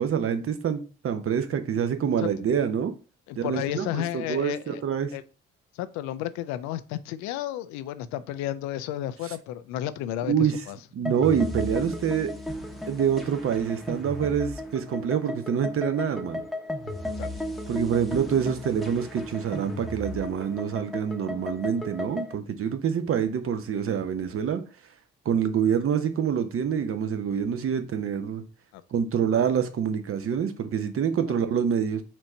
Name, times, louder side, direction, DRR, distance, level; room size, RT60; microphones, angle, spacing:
voice 1, 0.0-2.9 3.4-5.1 10.3-10.5 10.9-12.3 12.9-16.4 17.7-24.6 25.3-28.4 28.9-32.0, right 7 dB, 50° right, 0.8 m, -26 dB
voice 2, 3.3-4.8 5.1-5.2 5.7-10.3 10.7-10.8 17.2-17.3 28.7-28.8, left 13 dB, 75° left, 0.5 m, -32 dB
sound 1, 11.0-22.3, left 1 dB, ahead, 0.9 m, -35 dB
4.4 x 2.6 x 4.2 m
hypercardioid pair, 45°, 29 cm